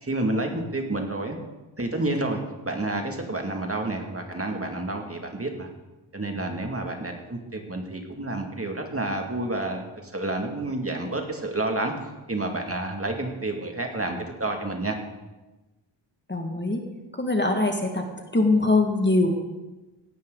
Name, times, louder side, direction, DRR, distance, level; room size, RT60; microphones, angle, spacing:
voice 1, 0.0-1.4 1.8-5.7 6.1-11.9 12.3-14.9, right 2 dB, 25° right, 3 dB, 2.4 m, -29 dB
voice 2, 16.3-16.8 17.1-18.1 18.3-19.3, left 2 dB, 20° left, 3 dB, 2.0 m, -22 dB
17.5 x 11.5 x 4.0 m, 1.1 s
cardioid pair, 60°, 49 cm